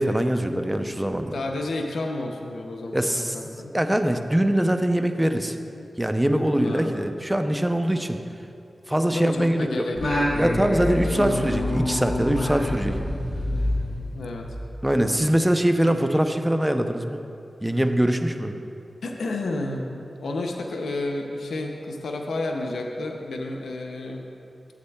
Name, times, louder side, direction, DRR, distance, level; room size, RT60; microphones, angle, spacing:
voice 1, 0.0-1.4 2.9-3.3 3.7-5.6 6.0-8.2 8.9-9.8 10.4-13.0 14.8-17.2 17.6-18.5, right 1 dB, 10° right, 7 dB, 0.5 m, -23 dB
voice 2, 1.3-3.7 5.7-5.9 6.5-7.0 9.1-10.6 14.1-14.6 19.0-24.2, left 2 dB, 90° left, 2 dB, 0.5 m, -31 dB
Singing, 9.9-14.7, left 1 dB, 70° left, 1.7 m, -26 dB
11.5 x 7.7 x 2.3 m, 2.6 s
cardioid pair, 40°, 0 cm